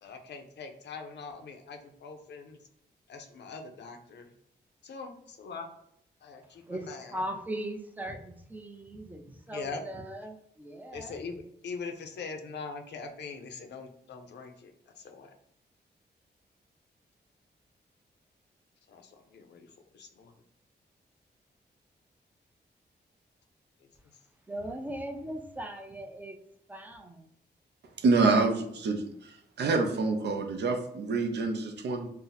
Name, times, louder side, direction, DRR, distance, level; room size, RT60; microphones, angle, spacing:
voice 1, 0.0-2.6 3.1-4.3 4.8-5.7 6.2-7.2 9.5-9.8 10.9-14.7 15.0-15.3 18.9-19.7 19.9-20.3, left 4 dB, 75° left, 5 dB, 0.6 m, -42 dB
voice 2, 6.7-11.2 24.5-26.4 26.7-27.3, right 1 dB, 10° right, 5 dB, 0.4 m, -39 dB
voice 3, 28.0-29.3 29.6-32.1, right 3 dB, 75° right, 5 dB, 0.5 m, -27 dB
2.7 x 2.0 x 3.9 m, 0.73 s
cardioid pair, 95°, 18 cm